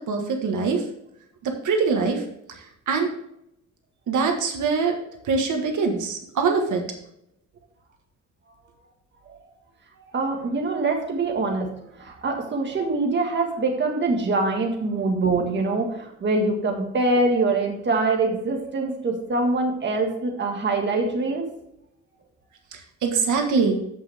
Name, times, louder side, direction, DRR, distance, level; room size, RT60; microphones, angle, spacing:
voice 1, 0.1-0.8 1.4-2.2 2.6-3.1 4.1-4.9 5.2-6.9 22.7-23.8, right 4 dB, 80° right, 3 dB, 1.7 m, -23 dB
voice 2, 10.1-11.7 11.9-21.4, right 3 dB, 40° right, 1 dB, 1.7 m, -24 dB
14.5 x 5.7 x 3.5 m, 0.77 s
wide cardioid pair, 175°, 30 cm